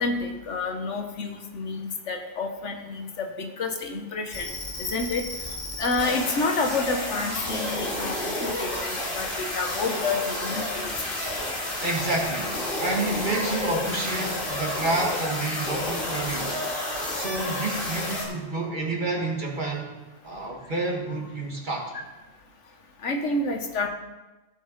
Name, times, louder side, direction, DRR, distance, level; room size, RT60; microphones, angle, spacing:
voice 1, 0.0-4.5 4.9-5.2 5.8-10.9 23.0-23.9, left 3 dB, 85° left, 5 dB, 1.4 m, -29 dB
sound 1, 4.3-18.3, left 1 dB, 45° left, 2.3 m, -31 dB
voice 2, 11.8-16.6 17.1-19.9 20.2-22.1, right 2 dB, 45° right, 0 dB, 1.7 m, -29 dB
15.5 x 6.0 x 4.0 m, 1.1 s
omnidirectional pair, 1.2 m